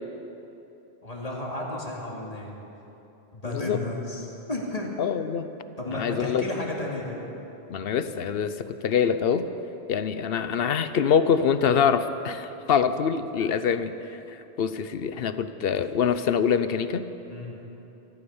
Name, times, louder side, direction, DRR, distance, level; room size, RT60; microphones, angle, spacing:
voice 1, 1.0-2.5 3.3-4.9 5.8-7.2 17.3-17.6, left 2 dB, 35° left, -3 dB, 2.6 m, -33 dB
voice 2, 3.4-3.8 5.0-5.5 5.9-6.5 7.7-9.5 9.9-17.1, left 7 dB, 65° left, 12 dB, 0.9 m, -25 dB
14.5 x 13.5 x 7.2 m, 3.0 s
omnidirectional pair, 1.1 m